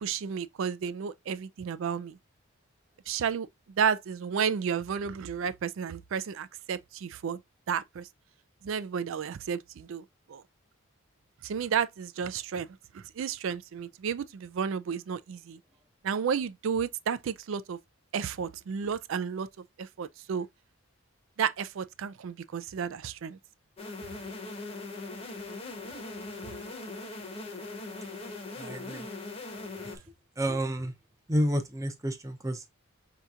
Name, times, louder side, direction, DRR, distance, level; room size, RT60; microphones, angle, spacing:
voice 1, 0.0-2.2 3.1-3.5 3.8-7.4 7.7-8.1 8.6-10.4 11.4-12.7 12.9-15.6 16.0-17.8 18.1-19.5 19.8-20.5 21.4-23.4, right 7 dB, 65° right, 0.3 m, -32 dB
sound 1, 23.8-30.0, left 2 dB, 25° left, 0.8 m, -40 dB
voice 2, 28.6-29.1 30.4-30.9 31.3-32.6, equal, 15° right, 0.5 m, -30 dB
5.5 x 2.8 x 2.4 m
head